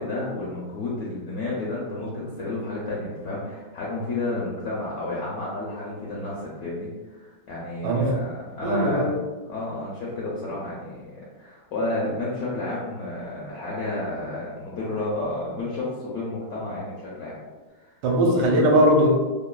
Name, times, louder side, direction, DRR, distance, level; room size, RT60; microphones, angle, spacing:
voice 1, 0.0-6.9 7.1-9.2 9.4-17.4 17.8-17.9, left 2 dB, 70° left, -6 dB, 0.9 m, -31 dB
voice 2, 7.8-8.2 8.6-9.0 18.0-19.1, equal, 75° right, -1 dB, 1.2 m, -19 dB
3.1 x 2.2 x 2.2 m, 1.2 s
omnidirectional pair, 2.0 m